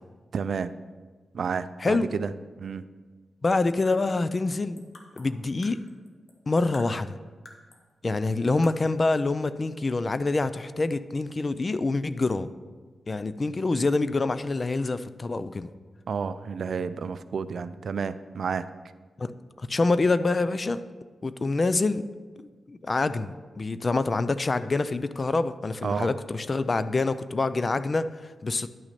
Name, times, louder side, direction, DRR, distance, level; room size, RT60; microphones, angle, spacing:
voice 1, 0.3-0.7 1.3-2.3 2.6-2.8 16.1-18.7 25.8-26.1, right 6 dB, 70° right, 13 dB, 0.3 m, -30 dB
voice 2, 3.4-4.8 5.2-5.8 6.5-7.2 8.0-12.5 13.1-15.7 19.2-19.3 19.6-20.8 21.2-22.0 22.4-28.7, left 3 dB, 40° left, 13 dB, 0.4 m, -26 dB
sound 1, 3.9-6.4 6.7-7.9 8.2-8.3 8.6-9.1, left 2 dB, 65° left, 1.2 m, -51 dB
10.5 x 5.9 x 4.2 m, 1.4 s
cardioid pair, 65°, 0 cm